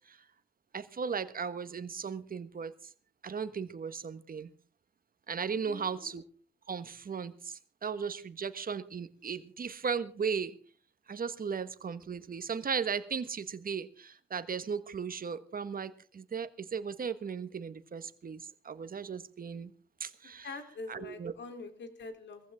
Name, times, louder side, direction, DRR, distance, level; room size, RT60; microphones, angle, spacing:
voice 1, 0.7-2.7 3.2-4.5 5.3-6.2 6.7-10.5 11.1-19.7 20.0-20.5 20.9-21.3, right 6 dB, 45° right, 12 dB, 1.4 m, -36 dB
voice 2, 5.6-6.2 20.4-22.5, left 3 dB, 65° left, 7 dB, 3.3 m, -45 dB
21.0 x 15.0 x 3.6 m, 0.41 s
supercardioid pair, 60°, 20 cm